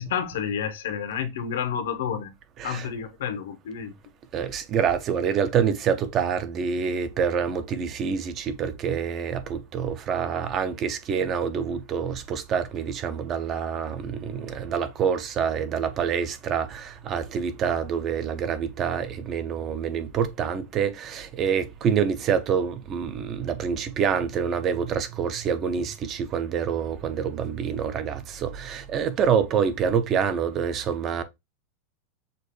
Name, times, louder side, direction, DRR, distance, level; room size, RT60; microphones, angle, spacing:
voice 1, 0.0-2.3 2.6-3.9 14.3-14.5, left 8 dB, 85° left, 1.0 m, -30 dB
voice 2, 4.3-31.2, right 7 dB, 25° right, 0.6 m, -26 dB
6.6 x 2.6 x 3.0 m
supercardioid pair, 170°, 0 cm